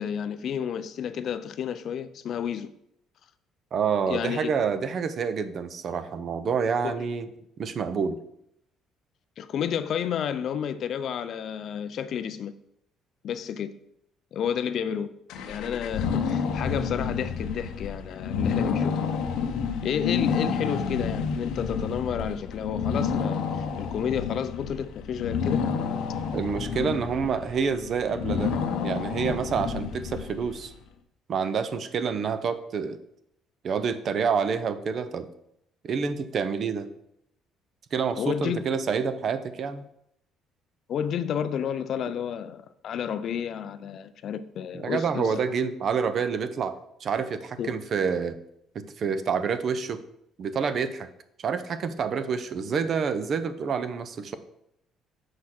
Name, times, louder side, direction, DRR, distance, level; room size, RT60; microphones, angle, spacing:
voice 1, 0.0-2.7 4.1-4.6 6.8-7.0 9.4-12.5 13.2-13.7 14.3-15.1 15.5-18.9 19.8-23.4 23.8-25.7 38.2-38.6 40.9-45.4 47.6-47.7, left 8 dB, 45° left, 0.4 m, -31 dB
voice 2, 3.7-7.3 7.6-8.2 26.3-28.5 28.8-30.7 31.3-33.0 33.6-35.3 35.8-36.9 37.9-39.8 44.7-48.4 48.7-50.0 50.4-51.1 51.4-54.4, right 6 dB, 35° right, 0.5 m, -28 dB
sound 1, 15.3-30.7, left 6 dB, 70° left, 0.8 m, -29 dB
6.4 x 4.7 x 5.8 m
cardioid pair, 175°, 0 cm